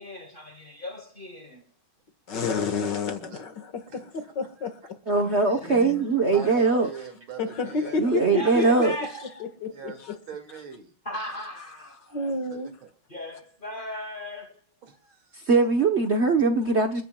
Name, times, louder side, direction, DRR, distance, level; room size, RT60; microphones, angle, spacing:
voice 1, 0.0-1.7 5.5-5.9 8.3-9.3 11.0-12.3 13.1-14.6, left 1 dB, 30° left, 1.3 m, -37 dB
voice 2, 2.3-4.8 5.3-6.0 7.4-8.6 9.4-10.2 12.1-12.7, left 4 dB, 60° left, 2.3 m, -30 dB
voice 3, 3.9-4.2 4.6-4.7 6.3-8.0 9.7-10.0 10.3-10.9 12.5-12.6 14.8-15.4, right 6 dB, 85° right, 3.2 m, -42 dB
voice 4, 5.1-6.9 8.0-8.9 15.5-17.0, right 4 dB, 40° right, 1.1 m, -21 dB
28.5 x 9.7 x 2.3 m
omnidirectional pair, 2.2 m